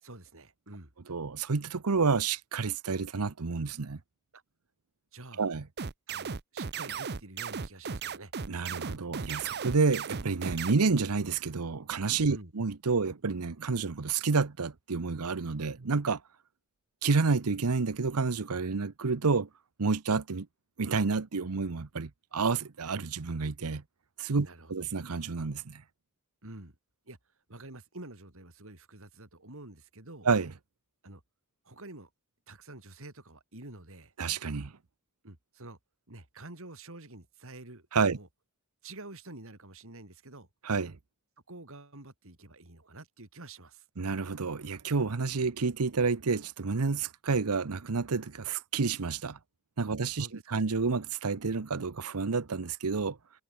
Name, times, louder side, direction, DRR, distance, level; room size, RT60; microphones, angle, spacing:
voice 1, 0.0-0.9 4.3-4.4 5.1-5.5 6.1-8.3 12.3-12.5 24.4-24.7 26.4-26.8 27.1-27.2 27.5-30.3 31.0-31.2 31.6-32.1 32.5-34.1 35.2-35.8 36.1-38.3 38.8-40.5 41.5-43.9 50.2-50.4, right 2 dB, 65° right, 3.9 m, -48 dB
voice 2, 1.1-4.0 5.4-5.6 8.5-16.2 17.0-19.5 19.8-20.5 20.8-23.8 24.2-25.8 30.2-30.5 34.2-34.7 37.9-38.2 40.6-41.0 44.0-49.4 49.8-53.2, right 4 dB, 85° right, 0.9 m, -29 dB
sound 1, 5.8-10.7, right 5 dB, 50° right, 0.8 m, -36 dB
head